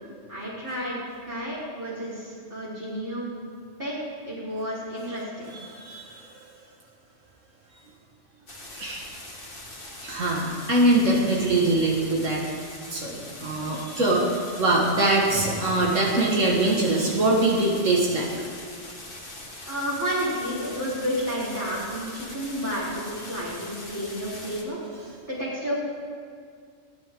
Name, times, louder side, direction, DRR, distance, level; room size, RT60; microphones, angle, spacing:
voice 1, 0.3-3.3 3.8-3.9 4.2-5.6 19.6-24.8 25.3-25.8, equal, 40° right, -11 dB, 4.2 m, -31 dB
voice 2, 5.5-6.4 8.8-9.1 10.0-12.4 12.9-18.5, right 2 dB, 85° right, -3 dB, 2.2 m, -23 dB
sound 1, 8.5-24.6, left 1 dB, 45° left, 2.2 m, -42 dB
28.0 x 9.5 x 3.8 m, 2.1 s
omnidirectional pair, 1.3 m